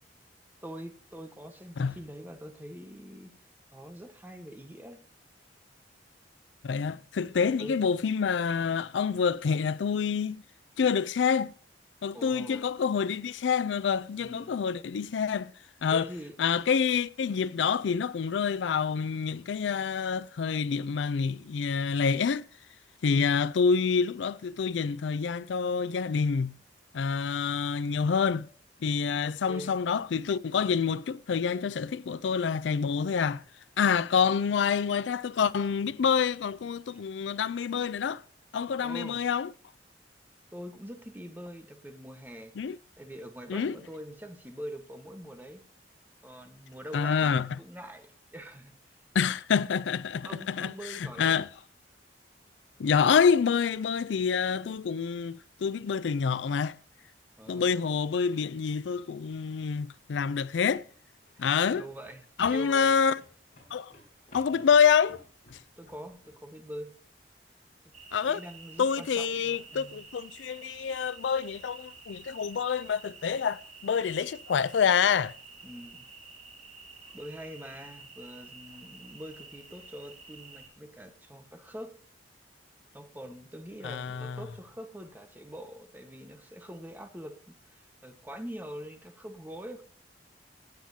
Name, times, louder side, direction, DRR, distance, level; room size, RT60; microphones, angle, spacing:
voice 1, 0.6-3.3 3.7-5.0 7.6-7.8 12.1-12.6 14.2-14.5 15.9-16.4 23.1-23.4 29.2-29.8 34.2-34.4 36.9-37.0 38.8-39.2 40.5-42.6 43.0-45.6 46.2-48.7 50.2-51.4 57.4-57.9 61.3-63.0 65.8-66.9 68.3-70.0 75.6-76.1 77.1-82.0 82.9-89.8, equal, 10° right, 1.2 m, -44 dB
voice 2, 6.6-10.4 10.8-11.5 12.0-15.5 15.8-16.1 16.4-22.4 23.0-26.6 26.9-28.5 28.8-33.4 33.8-38.2 38.5-39.5 42.6-42.8 43.5-43.8 46.9-47.5 49.1-50.7 51.2-51.5 52.8-56.8 57.5-60.9 61.4-61.8 62.4-63.2 63.7-63.9 64.3-65.2 68.1-68.4 68.8-75.3 83.8-84.4, left 6 dB, 85° left, 0.4 m, -27 dB
sound 1, 60.9-66.4, left 1 dB, 45° left, 6.6 m, -56 dB
sound 2, 67.9-80.7, right 4 dB, 40° right, 1.9 m, -50 dB
17.5 x 8.9 x 2.8 m
head